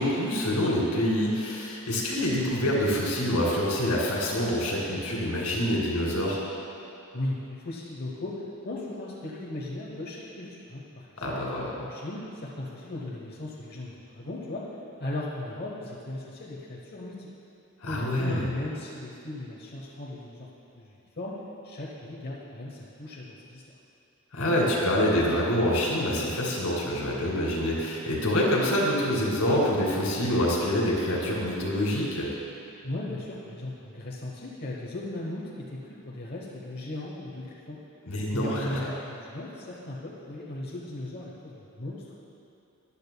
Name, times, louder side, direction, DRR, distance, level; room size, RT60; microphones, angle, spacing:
voice 1, 0.0-6.4 11.2-11.7 17.8-18.5 24.3-32.3 38.1-38.8, left 1 dB, 85° left, -4 dB, 2.2 m, -26 dB
voice 2, 7.1-11.3 11.8-14.6 15.0-17.3 17.9-20.5 20.7-20.9 21.2-21.3 21.6-23.6 32.8-37.8 38.3-42.2, left 1 dB, 45° left, -5 dB, 1.0 m, -37 dB
14.0 x 10.0 x 2.3 m, 2.8 s
head